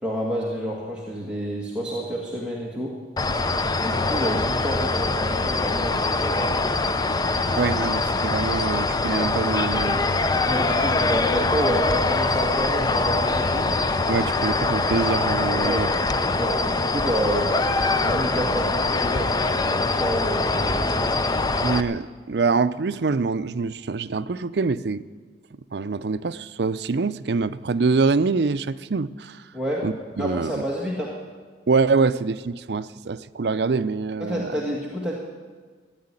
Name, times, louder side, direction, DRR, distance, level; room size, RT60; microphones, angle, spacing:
voice 1, 0.0-2.9 3.8-6.5 10.5-13.7 15.6-15.9 16.4-17.5 18.0-21.0 29.5-29.8 30.2-31.1 34.2-35.1, equal, 5° right, -5 dB, 1.8 m, -29 dB
sound 1, 3.2-21.8, left 3 dB, 20° left, 0.5 m, -23 dB
voice 2, 7.5-10.0 14.1-15.9 21.6-25.0 25.7-29.4 29.8-30.6 31.7-34.5, right 4 dB, 65° right, 15 dB, 0.5 m, -25 dB
14.5 x 9.7 x 9.8 m, 1.5 s
head